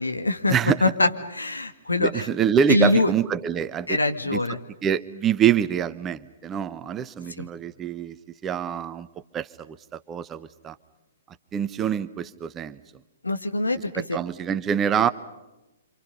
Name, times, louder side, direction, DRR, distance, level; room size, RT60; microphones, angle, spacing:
voice 1, 0.0-2.3 2.7-3.1 3.9-4.6 7.4-7.5 13.2-14.2, left 2 dB, 80° left, 6 dB, 2.2 m, -24 dB
voice 2, 2.0-4.0 4.3-8.2 8.4-9.1 9.3-10.8 11.5-12.8 13.9-15.1, right 8 dB, 20° right, 13 dB, 0.9 m, -25 dB
28.0 x 27.0 x 5.5 m, 0.99 s
figure-of-eight pair, 120°, 0 cm